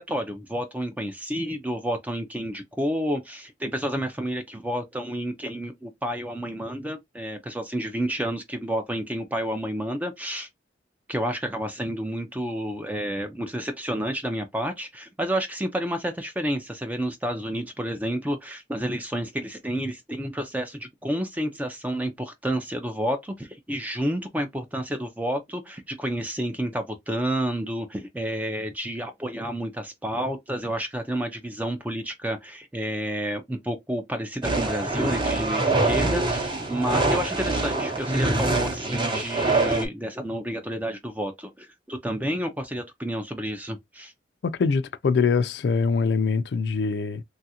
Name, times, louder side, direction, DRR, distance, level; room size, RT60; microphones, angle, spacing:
voice 1, 0.0-10.5 11.1-44.1, equal, 10° right, 0.4 m, -30 dB
sound 1, 34.4-39.9, right 2 dB, 25° right, 0.7 m, -24 dB
voice 2, 44.4-47.2, left 5 dB, 65° left, 0.3 m, -23 dB
3.1 x 2.4 x 2.8 m
head